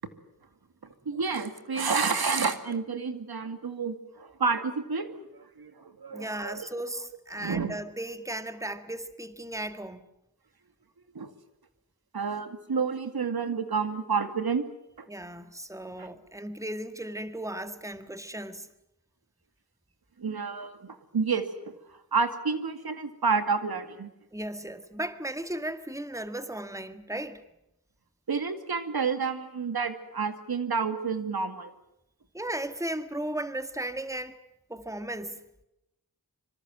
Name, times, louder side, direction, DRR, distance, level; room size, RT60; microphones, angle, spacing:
voice 1, 1.1-6.7 7.3-7.8 11.1-11.3 12.1-14.6 15.0-15.1 16.0-16.1 20.2-21.7 22.1-24.1 28.3-31.7, right 5 dB, 85° right, 2.4 m, -30 dB
voice 2, 6.1-10.0 15.1-18.7 24.3-27.4 32.3-34.4 34.7-35.4, right 1 dB, 10° right, 1.9 m, -36 dB
26.0 x 25.5 x 7.6 m
wide cardioid pair, 75°, 37 cm